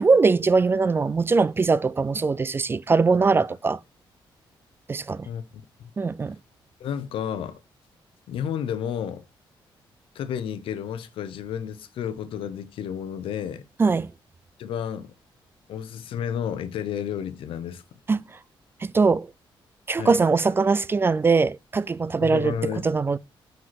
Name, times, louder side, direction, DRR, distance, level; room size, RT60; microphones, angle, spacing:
voice 1, 0.0-3.8 4.9-5.3 6.0-6.4 13.8-14.1 18.1-18.2 18.8-19.3 19.9-23.2, right 4 dB, 25° right, 0.3 m, -21 dB
voice 2, 6.8-7.6 8.3-9.3 10.1-13.6 14.6-15.1 15.7-17.8 20.0-20.2 22.2-22.9, left 8 dB, 80° left, 0.8 m, -31 dB
5.8 x 5.2 x 5.8 m
cardioid pair, 105°, 9 cm